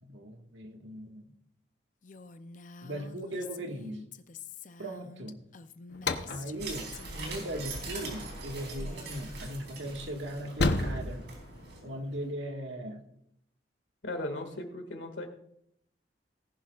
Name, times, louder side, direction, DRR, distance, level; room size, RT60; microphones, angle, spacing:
voice 1, 0.0-1.2 2.8-4.0 4.8-5.4 6.3-11.3 11.8-13.0, right 1 dB, 90° right, 3 dB, 1.7 m, -39 dB
Female speech woman speaking, 2.0-6.6 6.9-7.5 7.7-8.4 8.7-9.3, left 5 dB, 45° left, 0.5 m, -48 dB
sound 1, 5.9-12.3, left 2 dB, 65° left, 0.9 m, -35 dB
sound 2, 6.6-11.8, right 3 dB, 70° right, 4.1 m, -42 dB
voice 2, 14.0-15.3, left 1 dB, 85° left, 5 dB, 2.0 m, -37 dB
19.0 x 11.0 x 2.4 m, 0.73 s
head